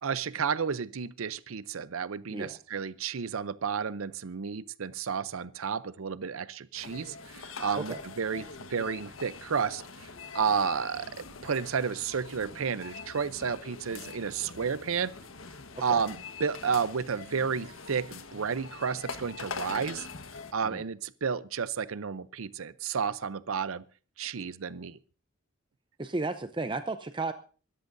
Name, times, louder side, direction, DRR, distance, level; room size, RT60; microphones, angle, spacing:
voice 1, 0.0-10.1 10.3-15.1 15.8-20.1 20.5-23.8 24.2-25.0, right 6 dB, 85° right, 0.6 m, -32 dB
sound 1, 6.7-20.5, left 4 dB, 75° left, 1.4 m, -44 dB
voice 2, 26.0-27.3, right 3 dB, 25° right, 0.6 m, -34 dB
25.5 x 13.5 x 2.6 m
head